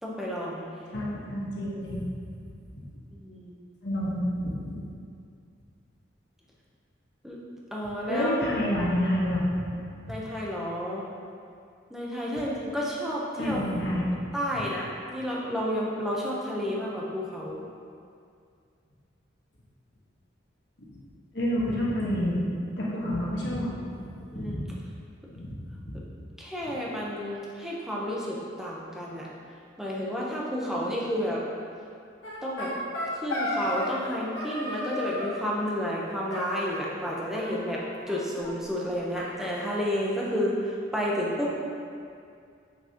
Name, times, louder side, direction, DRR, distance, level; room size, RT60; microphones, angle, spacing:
voice 1, 0.0-0.7 3.1-3.6 7.2-7.4 7.7-8.3 10.1-11.1 11.9-13.6 14.3-17.6 24.3-24.6 26.4-29.3 29.8-31.4 32.4-32.7 33.1-37.8 38.1-41.5, equal, ahead, -5 dB, 0.8 m, -31 dB
voice 2, 0.9-2.0 3.8-4.8 8.1-9.6 10.0-10.1 12.3-12.4 13.4-14.1 21.3-22.4 22.8-23.7 24.3-24.6 25.3-25.5 25.9-26.0, equal, 60° left, -5 dB, 1.3 m, -28 dB
sound 1, 32.2-34.1 34.3-35.4 36.3-37.1 37.3-38.2 38.4-38.5 38.8-38.9 39.1-40.2, left 1 dB, 75° left, 1.7 m, -34 dB
7.1 x 6.4 x 2.9 m, 2.3 s
head